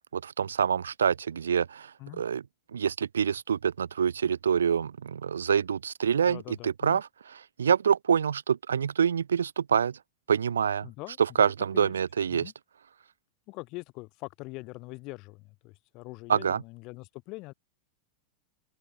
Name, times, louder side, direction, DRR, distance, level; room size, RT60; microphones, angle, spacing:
voice 1, 0.1-2.4 2.7-7.1 7.6-10.0 10.3-10.9 11.2-12.5 16.3-16.6, right 7 dB, 70° right, 4.6 m, -26 dB
voice 2, 6.3-7.0 10.8-11.9 12.3-12.5 13.5-17.5, left 24 dB, 40° left, 7.1 m, -43 dB
open air
figure-of-eight pair, 90°, 0 cm